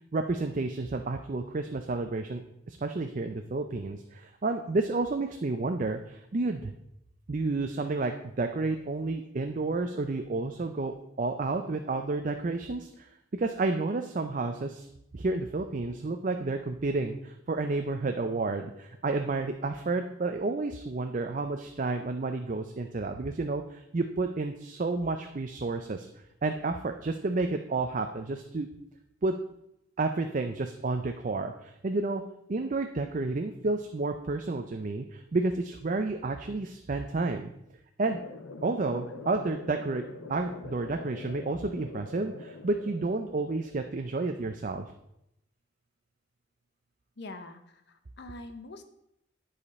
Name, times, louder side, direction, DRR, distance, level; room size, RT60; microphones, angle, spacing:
voice 1, 0.1-6.7 7.3-13.1 13.3-14.9 15.1-26.1 26.4-28.7 29.2-29.3 30.0-32.2 32.5-37.5 38.0-38.2 38.6-40.0 40.3-44.9, right 3 dB, 40° right, 5 dB, 0.5 m, -31 dB
sound 1, 38.1-44.1, left 3 dB, 85° left, 0.9 m, -44 dB
voice 2, 47.2-48.8, left 2 dB, 55° left, 8 dB, 0.8 m, -44 dB
11.0 x 5.0 x 4.2 m, 0.81 s
head